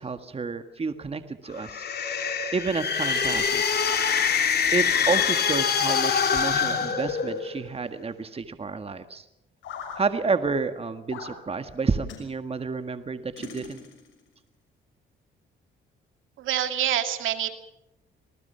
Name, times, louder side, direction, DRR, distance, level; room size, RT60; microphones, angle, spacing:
voice 1, 0.0-1.9 2.5-3.8 4.7-9.2 10.0-13.8, right 4 dB, 30° right, 9 dB, 1.8 m, -30 dB
sound 1, 1.5-7.6, left 7 dB, 55° left, 3.1 m, -25 dB
sound 2, 6.5-7.7 9.6-10.1 11.1-11.4 12.1-12.3 13.4-14.2, left 6 dB, 80° left, 6.2 m, -41 dB
voice 2, 16.4-17.5, right 11 dB, 80° right, 8 dB, 2.2 m, -26 dB
26.5 x 19.0 x 5.7 m, 0.85 s
cardioid pair, 90°, 20 cm